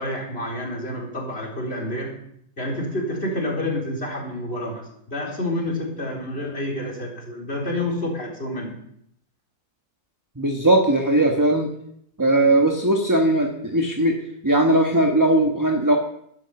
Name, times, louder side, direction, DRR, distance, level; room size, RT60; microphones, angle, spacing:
voice 1, 0.0-2.1 2.6-8.8, left 1 dB, 40° left, -1 dB, 4.2 m, -28 dB
voice 2, 10.4-11.7 12.2-16.0, right 1 dB, 15° right, 3 dB, 1.3 m, -19 dB
12.5 x 11.5 x 7.0 m, 0.72 s
omnidirectional pair, 1.6 m